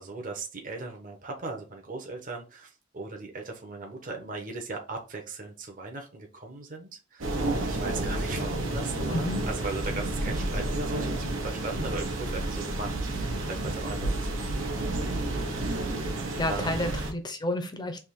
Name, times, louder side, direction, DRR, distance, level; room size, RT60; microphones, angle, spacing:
voice 1, 0.0-15.1 15.4-16.0 16.4-17.0, right 3 dB, 45° right, 2 dB, 1.0 m, -38 dB
sound 1, 7.2-17.1, right 2 dB, 85° right, 1.1 m, -30 dB
voice 2, 9.1-9.5 16.4-18.0, left 1 dB, 20° left, 7 dB, 0.7 m, -30 dB
3.6 x 2.9 x 4.4 m, 0.31 s
head